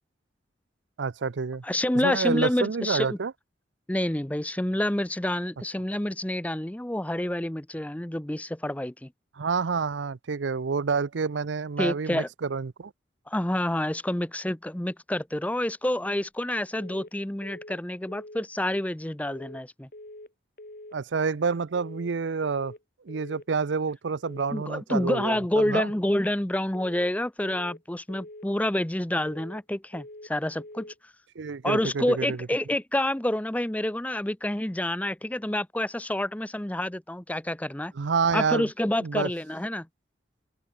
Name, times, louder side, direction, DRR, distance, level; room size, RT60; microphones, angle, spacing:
voice 1, 1.0-1.6 2.0-3.3 9.4-12.9 20.9-22.7 23.1-25.9 31.4-32.4 38.0-38.7 39.0-39.3, right 5 dB, 75° right, 0.6 m, -28 dB
voice 2, 1.6-3.2 3.9-9.1 11.8-12.3 13.3-19.9 24.5-30.9 31.6-37.9 38.3-39.9, left 1 dB, 10° left, 0.6 m, -28 dB
sound 1, 16.7-17.1 17.4-17.8 18.1-18.5 19.2-19.6 19.9-20.3 20.6-21.0 21.7-22.1 22.4-22.8 23.1-23.5 24.2-24.6 24.9-25.3 25.6-26.0 26.7-27.1 27.4-27.8 28.1-28.5 29.2-29.6 29.9-30.3 30.6-31.0, left 1 dB, 50° left, 3.1 m, -45 dB
open air
head